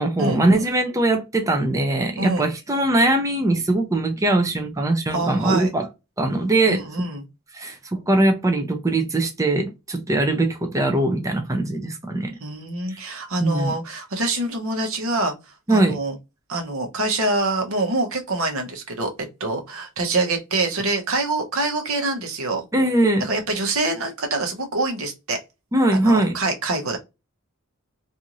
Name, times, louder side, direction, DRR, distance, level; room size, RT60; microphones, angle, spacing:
voice 1, 0.0-5.9 6.2-6.8 7.5-12.3 12.9-13.0 13.4-13.7 15.7-16.0 22.7-23.3 25.7-26.3, right 2 dB, 15° right, 0.5 m, -21 dB
voice 2, 2.2-2.5 5.1-5.7 6.7-7.2 12.4-15.3 15.7-16.1 16.5-22.6 23.2-25.4 26.0-27.0, right 2 dB, 75° right, 0.9 m, -25 dB
2.6 x 2.5 x 2.9 m
head